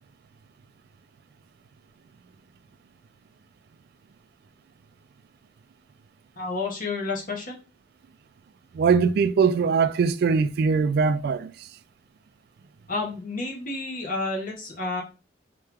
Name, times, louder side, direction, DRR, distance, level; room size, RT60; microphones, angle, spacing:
voice 1, 6.4-7.6 12.9-15.0, left 3 dB, 50° left, 1.2 m, -30 dB
voice 2, 8.7-11.7, right 5 dB, 60° right, 0.3 m, -21 dB
3.3 x 3.2 x 3.4 m
head